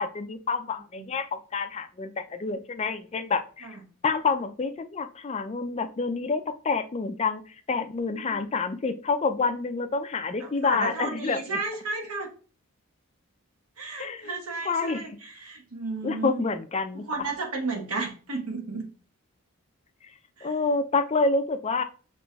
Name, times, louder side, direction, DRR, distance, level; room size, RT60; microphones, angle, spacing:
voice 1, 0.0-3.7 4.0-11.6 14.0-15.1 16.0-17.1 20.4-21.8, left 4 dB, 30° left, 9 dB, 0.3 m, -28 dB
voice 2, 0.7-1.1 3.6-3.7 8.1-8.5 10.4-12.3 13.8-16.4 16.9-18.8 20.4-20.5, right 3 dB, 85° right, 1 dB, 1.1 m, -33 dB
5.4 x 2.9 x 2.3 m, 0.38 s
head